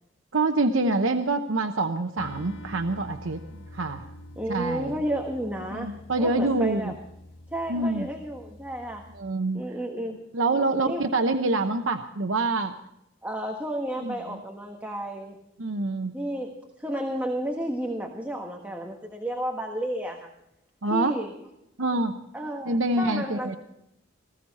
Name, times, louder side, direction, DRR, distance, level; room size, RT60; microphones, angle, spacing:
voice 1, 0.3-3.4 3.7-4.1 4.5-4.9 5.7-6.9 7.7-8.1 9.2-9.6 10.3-12.8 14.0-14.1 15.6-16.2 20.8-21.1 21.8-22.2 22.7-23.6, right 2 dB, 80° right, 6 dB, 0.9 m, -26 dB
sound 1, 2.2-9.2, left 1 dB, 75° left, 1.3 m, -46 dB
voice 2, 4.4-6.9 7.5-9.0 9.5-10.2 10.5-11.1 13.2-15.4 16.1-20.3 20.9-21.3 22.3-23.6, right 1 dB, 10° right, 2 dB, 1.4 m, -32 dB
19.5 x 15.5 x 4.2 m, 0.83 s
head